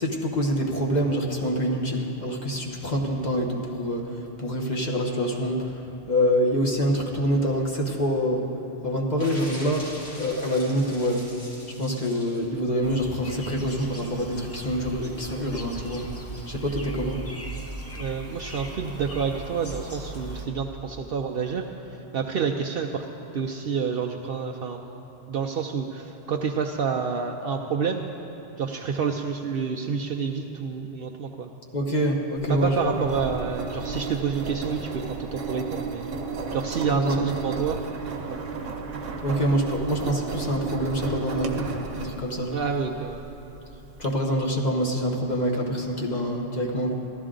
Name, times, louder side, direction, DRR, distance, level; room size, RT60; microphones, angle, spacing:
voice 1, 0.0-5.8 6.1-8.4 8.8-11.3 11.8-16.1 16.5-17.2 31.7-32.9 36.9-37.2 39.2-42.5 44.0-46.9, equal, 40° left, -1 dB, 1.0 m, -26 dB
sound 1, 9.2-12.4, equal, 75° left, 2.9 m, -42 dB
sound 2, 12.8-20.5, right 2 dB, 15° left, 0.8 m, -38 dB
voice 2, 17.9-21.6 22.1-23.1 23.3-25.0 25.3-28.1 28.6-31.5 32.5-36.1 36.5-37.8 38.3-38.4 42.5-43.2, right 6 dB, 60° right, 2 dB, 0.7 m, -28 dB
Engine, 32.4-44.1, right 4 dB, 85° right, 1.2 m, -33 dB
14.5 x 12.0 x 3.8 m, 3.0 s
omnidirectional pair, 1.3 m